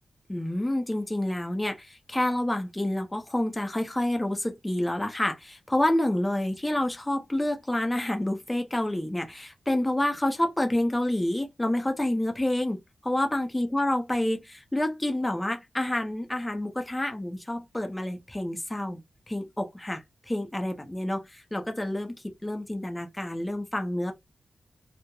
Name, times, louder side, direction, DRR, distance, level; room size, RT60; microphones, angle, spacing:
voice 1, 0.3-19.0 19.3-24.1, left 1 dB, 10° left, 0.5 m, -28 dB
2.9 x 2.0 x 2.2 m
wide cardioid pair, 140°, 0 cm